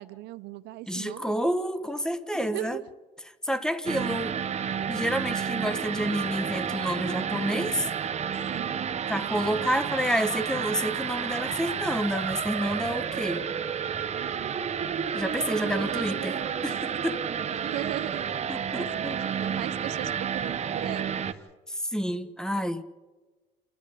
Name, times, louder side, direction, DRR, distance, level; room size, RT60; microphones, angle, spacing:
voice 1, 0.0-1.3 2.3-2.9 8.5-8.9 9.6-9.8 14.1-14.7 15.3-16.8 17.6-18.3 18.5-21.4, right 15 dB, 80° right, 16 dB, 0.7 m, -38 dB
voice 2, 0.9-2.8 3.4-4.4 4.9-7.9 9.1-13.5 15.1-16.8 17.0-17.2 18.5-19.2 19.5-19.6 21.7-22.8, equal, 5° left, 11 dB, 1.4 m, -29 dB
sound 1, 3.9-21.3, right 7 dB, 40° right, 1.2 m, -31 dB
28.5 x 13.0 x 8.5 m, 1.3 s
cardioid pair, 110°, 17 cm